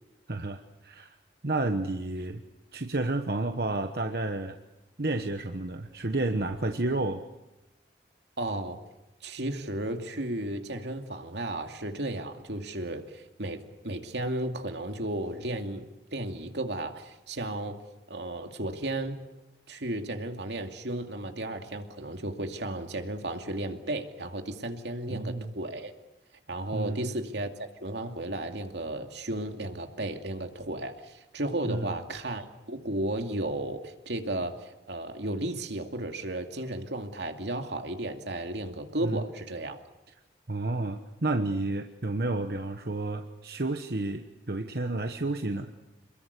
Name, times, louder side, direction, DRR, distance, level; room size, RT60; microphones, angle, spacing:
voice 1, 0.3-1.2 1.4-2.4 2.7-4.6 5.0-7.2 25.1-25.5 26.7-27.1 31.6-31.9 39.0-39.2 40.5-45.7, right 2 dB, 60° right, 6 dB, 1.2 m, -31 dB
voice 2, 8.4-8.8 9.2-15.9 16.1-17.8 18.1-19.2 19.7-25.9 26.5-39.8, right 1 dB, 80° right, 5 dB, 2.5 m, -34 dB
28.0 x 21.5 x 8.3 m, 0.99 s
head